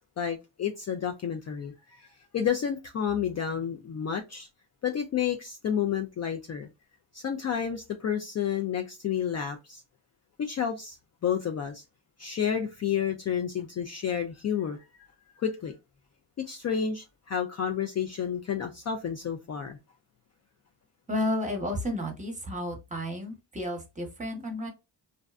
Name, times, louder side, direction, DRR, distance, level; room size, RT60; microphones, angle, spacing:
voice 1, 0.2-4.5 4.8-6.7 7.1-9.8 10.4-11.0 11.2-11.8 12.2-15.1 15.4-15.7 16.5-19.8, left 8 dB, 40° left, 0.4 m, -30 dB
voice 2, 21.1-24.7, left 1 dB, 15° right, 0.9 m, -32 dB
2.6 x 2.0 x 2.4 m
cardioid pair, 75°, 45 cm